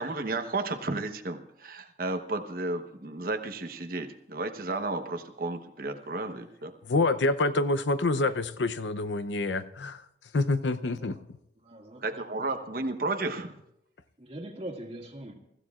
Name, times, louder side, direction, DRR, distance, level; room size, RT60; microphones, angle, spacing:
voice 1, 0.0-6.7 12.0-13.6, right 2 dB, 55° right, 6 dB, 1.1 m, -33 dB
voice 2, 6.8-11.2, left 2 dB, 90° left, 12 dB, 0.7 m, -27 dB
voice 3, 11.6-12.0 12.4-12.5 14.2-15.3, right 1 dB, 35° right, 1 dB, 2.1 m, -41 dB
28.5 x 15.0 x 2.4 m, 0.81 s
head